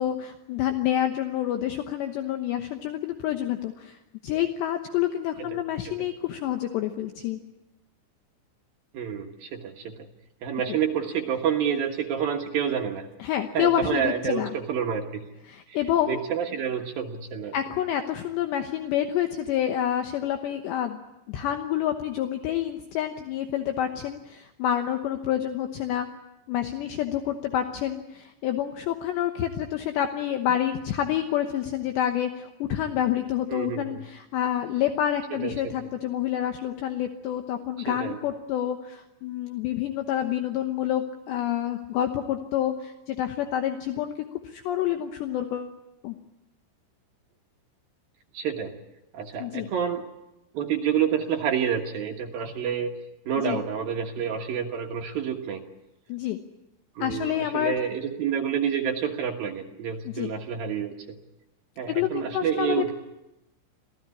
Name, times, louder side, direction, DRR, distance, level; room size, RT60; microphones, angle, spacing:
voice 1, 0.0-7.4 10.7-10.8 13.2-14.5 15.5-16.2 17.5-21.0 21.3-26.1 26.5-45.7 46.0-46.2 49.4-49.7 53.4-53.6 56.1-56.4 57.0-57.8 60.1-60.3 61.9-62.9, left 11 dB, 75° left, 6 dB, 3.0 m, -28 dB
voice 2, 5.5-5.9 8.9-10.1 10.4-13.0 13.5-15.2 15.7-15.8 16.1-17.5 33.5-34.0 35.4-35.7 37.9-38.2 48.3-48.7 49.1-50.0 50.5-52.9 53.3-55.6 57.0-61.2 61.8-62.9, right 8 dB, 65° right, 2 dB, 2.6 m, -28 dB
26.5 x 16.5 x 9.7 m, 0.94 s
omnidirectional pair, 5.7 m